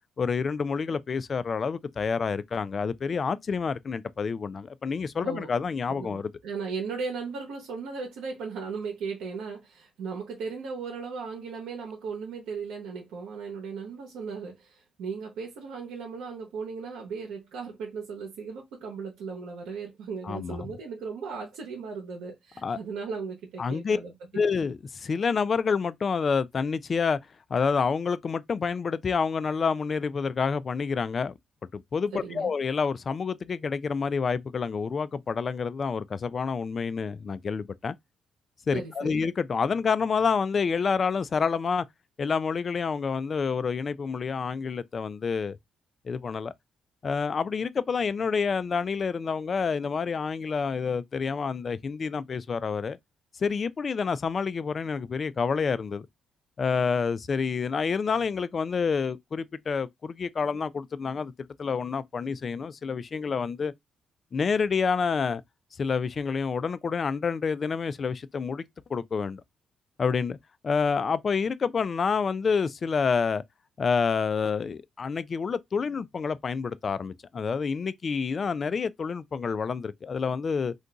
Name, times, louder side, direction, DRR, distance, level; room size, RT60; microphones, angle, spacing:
voice 1, 0.2-6.3 20.2-20.8 22.6-22.8 23.6-24.0 24.3-27.2 27.5-31.3 31.7-37.9 38.7-41.8 42.2-45.6 46.0-46.5 47.0-53.0 53.4-56.1 56.6-61.3 61.6-63.7 64.3-65.4 65.8-68.6 68.9-69.4 70.0-70.4 70.6-73.4 73.8-80.7, left 5 dB, 40° left, 0.3 m, -28 dB
voice 2, 5.9-24.1 32.1-32.5 38.7-39.2, right 5 dB, 90° right, 0.8 m, -37 dB
2.5 x 2.2 x 3.8 m
cardioid pair, 90°, 0 cm